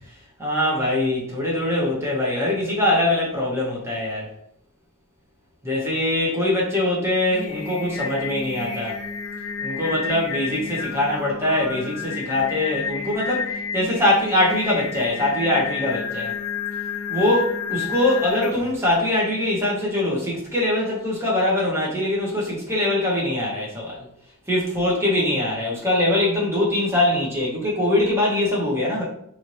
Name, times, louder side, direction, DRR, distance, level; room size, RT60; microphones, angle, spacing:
voice 1, 0.4-4.3 5.6-9.0 9.6-16.3 17.1-24.0 24.5-29.0, left 1 dB, 10° right, -5 dB, 1.4 m, -22 dB
Singing, 7.1-18.8, left 5 dB, 65° left, 0.7 m, -31 dB
4.7 x 2.9 x 3.2 m, 0.69 s
head